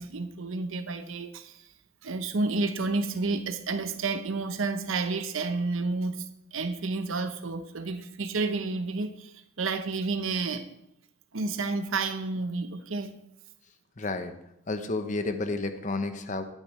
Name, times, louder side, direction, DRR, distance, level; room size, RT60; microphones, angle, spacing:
voice 1, 0.0-1.7 2.0-6.3 6.5-10.7 11.3-13.2, right 3 dB, 65° right, 0.7 m, -30 dB
voice 2, 14.0-14.3 14.7-16.4, left 2 dB, 35° left, 0.7 m, -31 dB
12.0 x 9.1 x 3.1 m
head